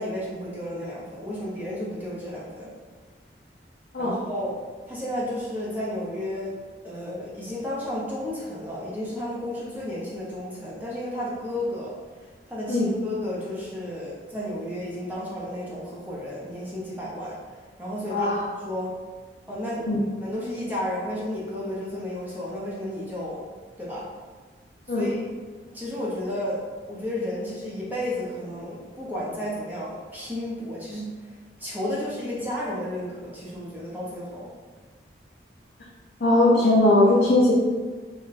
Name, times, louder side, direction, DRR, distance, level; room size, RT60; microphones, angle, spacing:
voice 1, 0.0-2.7 4.0-4.5 4.9-6.6 6.8-11.9 12.5-17.4 17.8-18.4 18.6-18.9 19.5-19.9 20.2-23.4 23.8-24.1 24.9-25.2 25.7-26.6 26.9-31.3 31.6-34.5, left 1 dB, 10° right, -7 dB, 0.6 m, -32 dB
voice 2, 18.1-18.4 19.9-20.0 24.9-25.1 36.2-37.5, left 2 dB, 60° left, -6 dB, 0.5 m, -19 dB
2.5 x 2.2 x 3.9 m, 1.4 s
head